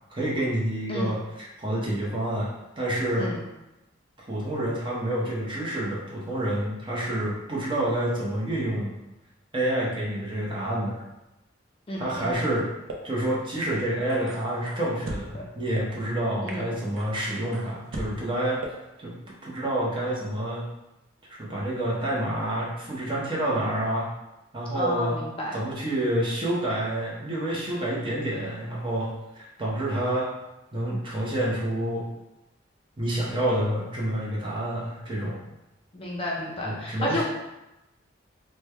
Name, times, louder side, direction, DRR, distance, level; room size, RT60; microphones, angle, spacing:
voice 1, 0.1-3.3 4.3-9.0 9.5-11.0 11.9-12.7 13.0-18.6 19.0-19.1 19.4-20.6 21.3-24.1 24.5-25.1 25.5-30.3 30.7-32.1 33.0-35.4 36.6-37.2, right 1 dB, 25° right, -5 dB, 0.7 m, -28 dB
voice 2, 11.9-12.5 15.3-15.4 16.4-16.7 24.7-25.5 35.9-37.2, left 1 dB, 25° left, -3 dB, 0.4 m, -31 dB
sound 1, 12.9-13.0 13.6-13.7 14.1-15.2 15.7-15.8 16.5-16.6 17.0-18.1 18.6-18.7, right 2 dB, 75° right, 0.5 m, -37 dB
3.2 x 2.2 x 3.2 m, 0.96 s
head